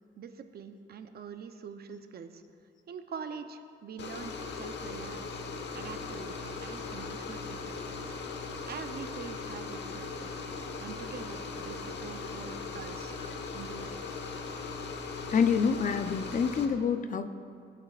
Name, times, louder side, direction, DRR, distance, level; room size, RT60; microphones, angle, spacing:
voice 1, 0.2-2.4 2.9-5.4 5.7-13.1 13.5-14.2, right 6 dB, 50° right, 8 dB, 0.7 m, -45 dB
sound 1, 4.0-16.7, left 4 dB, 60° left, 1.1 m, -39 dB
voice 2, 15.3-17.3, left 6 dB, 40° left, 10 dB, 0.6 m, -27 dB
18.5 x 8.8 x 2.5 m, 2.5 s
cardioid pair, 90°, 20 cm